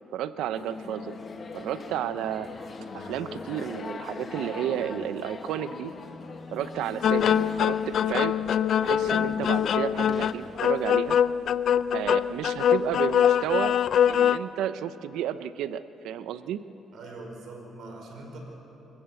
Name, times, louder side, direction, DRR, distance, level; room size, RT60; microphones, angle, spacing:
voice 1, 0.1-1.2 1.5-2.5 2.9-5.9 6.5-8.4 8.8-11.2 11.9-13.8 14.1-16.6, right 10 dB, 90° right, 13 dB, 0.7 m, -32 dB
sound 1, 0.5-11.2, left 4 dB, 45° left, 1.7 m, -41 dB
sound 2, 7.0-14.4, left 9 dB, 65° left, 0.5 m, -23 dB
voice 2, 16.9-18.4, right 2 dB, 70° right, 2 dB, 5.3 m, -42 dB
24.5 x 15.0 x 7.8 m, 3.0 s
cardioid pair, 90°, 0 cm